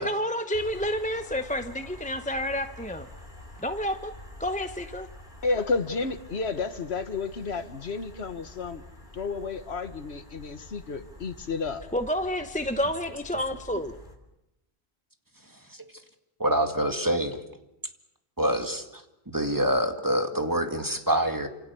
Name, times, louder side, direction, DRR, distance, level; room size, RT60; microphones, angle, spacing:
voice 1, 0.0-3.1 3.6-4.1 4.4-5.1 11.9-14.0, equal, 10° left, 8 dB, 0.8 m, -29 dB
sound 1, 0.5-14.1, left 1 dB, 45° left, 3.6 m, -47 dB
voice 2, 5.4-8.8 9.1-11.8, left 4 dB, 80° left, 10 dB, 1.6 m, -31 dB
voice 3, 16.4-17.4 18.4-21.5, right 1 dB, 20° right, 5 dB, 2.2 m, -26 dB
28.5 x 27.0 x 7.0 m, 0.91 s
omnidirectional pair, 1.1 m